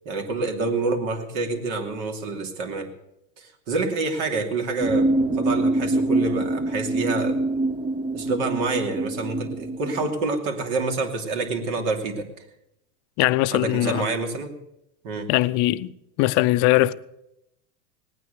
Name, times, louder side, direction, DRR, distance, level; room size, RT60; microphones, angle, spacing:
voice 1, 0.0-2.9 3.4-7.6 8.1-12.3 13.5-14.6 15.0-15.3, right 3 dB, 60° right, 2.9 m, -27 dB
sound 1, 4.8-10.1, right 2 dB, 10° right, 0.5 m, -25 dB
voice 2, 13.2-14.0 15.3-15.9 16.2-16.9, left 18 dB, 40° left, 0.5 m, -20 dB
19.0 x 9.3 x 6.7 m
supercardioid pair, 130°, 48 cm